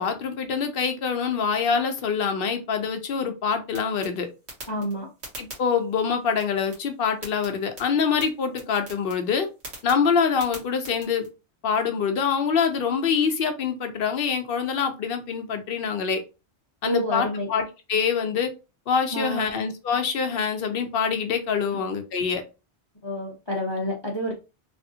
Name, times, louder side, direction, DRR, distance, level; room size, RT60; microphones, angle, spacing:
voice 1, 0.0-4.3 5.4-9.5 9.8-11.2 11.6-16.2 16.8-17.6 17.9-18.5 18.9-22.4, left 6 dB, 60° left, 6 dB, 0.8 m, -25 dB
sound 1, 3.7-11.3, right 1 dB, 80° right, 1.7 m, -45 dB
voice 2, 4.7-5.1 16.8-17.5 19.1-19.6 23.0-24.3, equal, 30° left, -2 dB, 0.6 m, -29 dB
3.3 x 2.4 x 2.7 m, 0.29 s
omnidirectional pair, 1.1 m